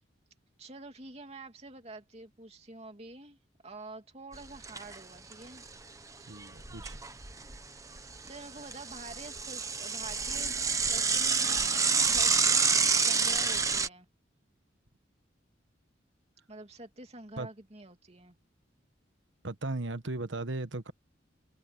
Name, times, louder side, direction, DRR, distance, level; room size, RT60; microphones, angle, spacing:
voice 1, 0.6-3.4 3.6-5.6 8.2-14.1 16.5-18.4, right 2 dB, 35° right, 2.9 m, -47 dB
Bicycle / Mechanisms, 4.3-5.0 5.3-5.4 5.7-5.8 6.4-7.6 8.0-13.9, right 5 dB, 15° right, 1.1 m, -28 dB
voice 2, 6.3-7.0 17.4-17.5 19.4-20.9, right 2 dB, 75° right, 1.4 m, -36 dB
head